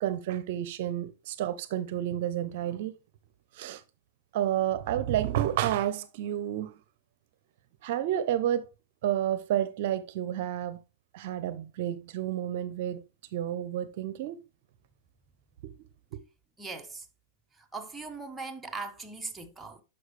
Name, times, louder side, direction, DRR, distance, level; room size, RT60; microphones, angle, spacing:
voice 1, 0.0-2.9 3.5-3.8 4.3-6.8 7.8-8.7 9.0-10.8 11.1-13.0 13.3-14.4 15.6-15.7 16.1-16.2, right 11 dB, 60° right, 0.6 m, -30 dB
voice 2, 16.6-17.1 17.6-19.8, right 3 dB, 10° right, 1.1 m, -40 dB
11.0 x 5.5 x 3.2 m
hypercardioid pair, 115°, 0 cm